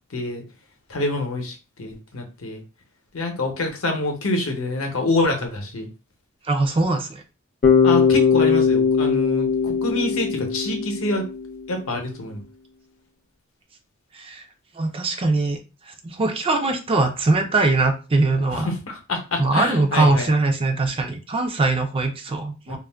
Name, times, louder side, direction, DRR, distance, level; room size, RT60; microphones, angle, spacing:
voice 1, 0.1-0.4 0.9-2.6 3.1-5.9 7.8-11.2 11.7-12.4 18.5-20.3 22.7-22.8, left 2 dB, 70° left, 3 dB, 0.7 m, -26 dB
voice 2, 6.4-7.2 14.1-14.5 14.8-15.6 15.9-18.7 19.4-22.8, right 2 dB, 25° right, 6 dB, 0.3 m, -21 dB
Bass guitar, 7.6-11.7, left 6 dB, 40° left, 0.5 m, -19 dB
2.3 x 2.1 x 3.3 m, 0.32 s
head